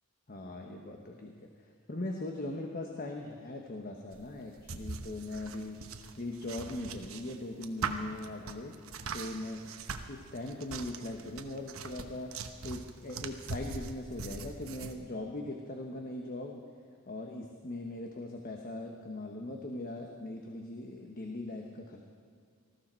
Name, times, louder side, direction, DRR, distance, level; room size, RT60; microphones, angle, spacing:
voice 1, 0.3-1.5 1.9-5.9 6.2-8.7 9.1-9.7 10.1-16.6 17.1-22.0, left 2 dB, 40° left, 2 dB, 1.2 m, -40 dB
sound 1, 4.1-14.9, right 4 dB, 70° right, 1.0 m, -42 dB
19.5 x 14.5 x 4.5 m, 2.2 s
head